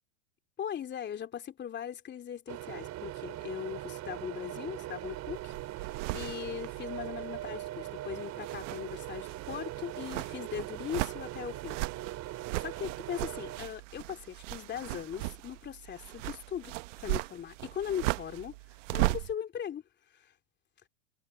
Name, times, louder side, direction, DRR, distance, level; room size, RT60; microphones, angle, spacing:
voice 1, 0.6-5.5 6.1-11.8 12.6-16.7 17.0-18.6 18.9-19.8 20.1-20.3, left 9 dB, 25° left, 3.0 m, -39 dB
sound 1, 2.5-13.6, right 15 dB, 40° right, 3.8 m, -41 dB
sound 2, 5.0-7.8 8.2-19.3, right 23 dB, 65° right, 1.0 m, -38 dB
supercardioid pair, 115°, 39 cm